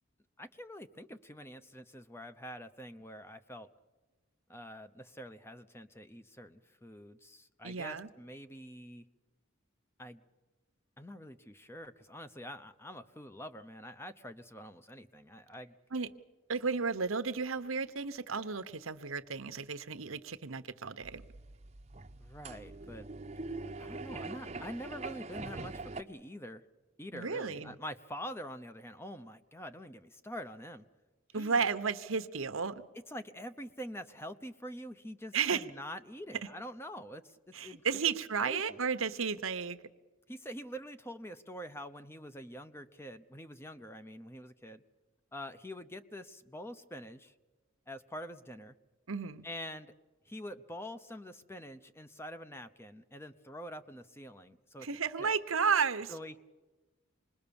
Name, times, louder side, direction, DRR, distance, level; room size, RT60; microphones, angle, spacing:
voice 1, 0.4-3.7 4.5-9.0 10.0-10.2 11.0-15.7 22.2-23.1 23.8-26.6 27.0-30.8 31.3-31.7 33.1-37.4 37.6-37.9 38.4-38.8 40.3-44.8 45.3-47.3 47.9-48.8 49.4-49.9 50.3-54.9 55.2-55.3 56.1-56.4, equal, 10° left, 10 dB, 0.7 m, -46 dB
voice 2, 7.6-8.1 15.9-16.1 16.5-21.2 27.1-27.8 31.3-32.8 35.3-35.6 37.5-39.8 49.1-49.5 54.8-56.1, right 5 dB, 85° right, 11 dB, 1.0 m, -33 dB
sound 1, 21.0-26.0, right 3 dB, 30° right, 0.8 m, -43 dB
26.5 x 21.0 x 7.1 m, 1.2 s
head